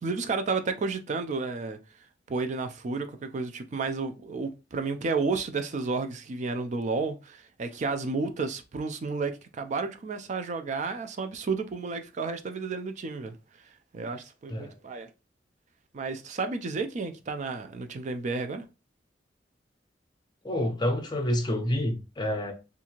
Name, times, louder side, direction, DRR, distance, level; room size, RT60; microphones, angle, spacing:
voice 1, 0.0-1.8 2.3-13.4 13.9-15.1 15.9-18.6, right 4 dB, 40° right, 0.3 m, -31 dB
voice 2, 20.4-22.5, left 1 dB, 25° left, 0.5 m, -28 dB
2.6 x 2.4 x 2.9 m
head